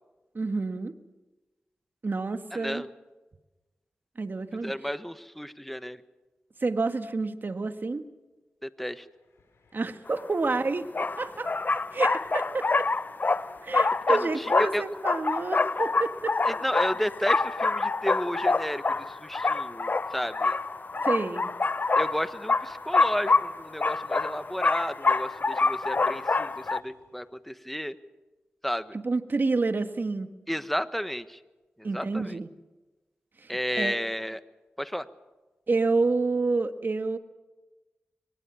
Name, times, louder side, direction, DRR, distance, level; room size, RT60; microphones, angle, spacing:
voice 1, 0.3-0.9 2.0-2.8 4.1-4.7 6.6-8.0 9.7-11.5 11.9-12.7 13.6-16.4 21.0-21.5 28.9-30.3 31.8-32.5 33.4-34.0 35.7-37.2, right 3 dB, 50° right, 9 dB, 1.6 m, -29 dB
voice 2, 2.5-2.9 4.6-6.0 8.6-9.1 14.1-14.8 16.4-20.6 21.9-28.0 28.6-29.0 30.5-31.4 31.8-32.4 33.5-34.4 34.8-35.1, equal, 5° left, 12 dB, 1.3 m, -32 dB
sound 1, 8.9-27.4, left 3 dB, 80° left, 6.1 m, -59 dB
sound 2, 10.2-10.3 10.9-26.8, left 3 dB, 40° left, 0.7 m, -26 dB
23.5 x 19.5 x 7.2 m, 1.1 s
cardioid pair, 45°, 4 cm